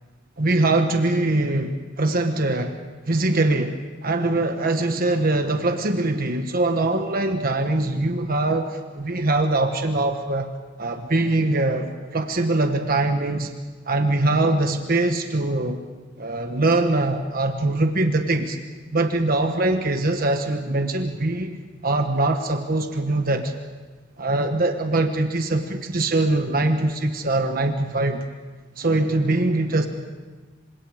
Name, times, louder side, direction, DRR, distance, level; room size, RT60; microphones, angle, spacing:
voice 1, 0.4-2.7 3.1-3.8 4.0-10.5 10.8-13.5 13.9-15.8 16.2-18.6 18.9-21.6 21.8-23.5 24.2-28.2 28.8-29.9, right 2 dB, 50° right, 6 dB, 1.3 m, -22 dB
27.0 x 26.0 x 5.0 m, 1.3 s
head